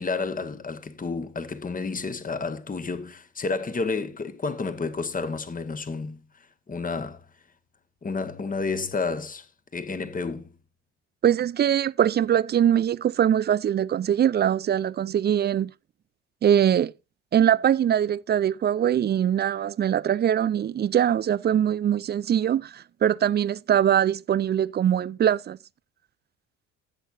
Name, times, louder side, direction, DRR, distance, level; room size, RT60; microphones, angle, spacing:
voice 1, 0.0-6.2 6.7-7.2 8.0-9.5 9.7-10.5, left 4 dB, 25° left, 1.4 m, -30 dB
voice 2, 11.2-15.7 16.4-16.9 17.3-25.6, right 10 dB, 30° right, 0.4 m, -22 dB
15.5 x 8.2 x 2.6 m
hypercardioid pair, 50°, 36 cm